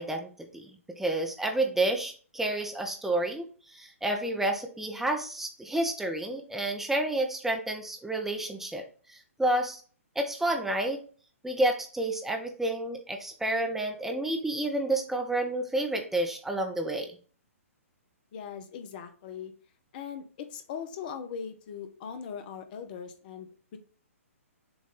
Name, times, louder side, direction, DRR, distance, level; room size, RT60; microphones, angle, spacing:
voice 1, 0.0-9.8 10.2-11.0 11.4-17.2, right 1 dB, 5° right, 3 dB, 0.8 m, -30 dB
voice 2, 18.3-19.5 19.9-23.8, left 7 dB, 35° left, 8 dB, 0.8 m, -40 dB
7.0 x 2.6 x 5.3 m, 0.40 s
figure-of-eight pair, 125°, 8 cm